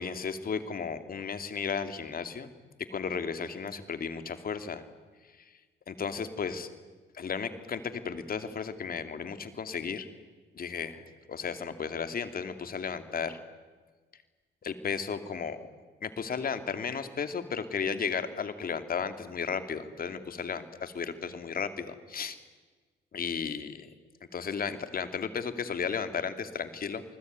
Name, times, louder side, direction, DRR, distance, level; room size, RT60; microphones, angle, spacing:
voice 1, 0.0-2.5 2.9-4.8 5.9-6.7 7.1-10.1 10.6-11.0 11.3-13.4 14.6-15.7 16.0-22.4 23.1-23.9 24.3-27.0, left 6 dB, 50° left, 9 dB, 2.6 m, -34 dB
28.0 x 20.5 x 9.5 m, 1.4 s
cardioid pair, 90°, 20 cm